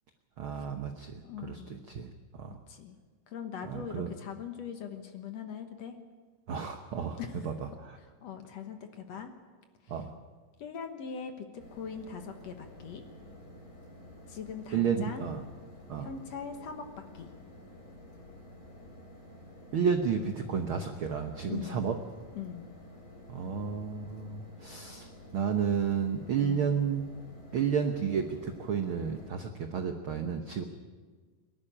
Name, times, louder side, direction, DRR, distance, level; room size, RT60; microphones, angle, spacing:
voice 1, 0.4-2.6 3.7-4.1 6.5-7.5 7.8-8.0 9.9-10.1 14.7-15.4 15.9-16.1 19.7-22.0 23.3-27.1 27.5-30.6, right 7 dB, 70° right, 5 dB, 1.2 m, -32 dB
voice 2, 1.2-1.8 2.7-3.0 3.3-6.0 7.2-7.5 8.0-9.3 9.8-10.0 10.6-13.0 14.3-15.3 16.0-16.9 17.1-17.3 21.5-21.9 22.3-22.7 26.4-26.8, left 7 dB, 60° left, 7 dB, 2.0 m, -41 dB
sound 1, 11.6-29.3, left 1 dB, 25° left, 3.6 m, -51 dB
23.0 x 12.0 x 10.0 m, 1.4 s
omnidirectional pair, 3.9 m